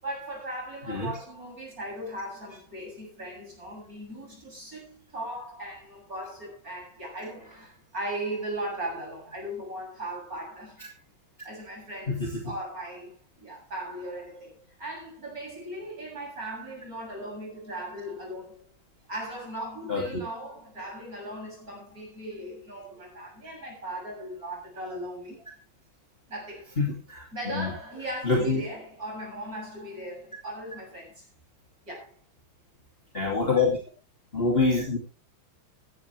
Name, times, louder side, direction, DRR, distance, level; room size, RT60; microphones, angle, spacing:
voice 1, 0.0-11.0 11.4-18.7 19.1-25.5 26.3-26.8 27.3-31.2 31.9-32.2, right 1 dB, 45° right, 7.9 m, -38 dB
voice 2, 12.1-12.4 19.9-20.0 26.8-27.7 28.2-28.6 33.1-33.8 34.3-35.0, left 3 dB, 25° left, 2.8 m, -25 dB
15.5 x 13.0 x 3.4 m
omnidirectional pair, 2.2 m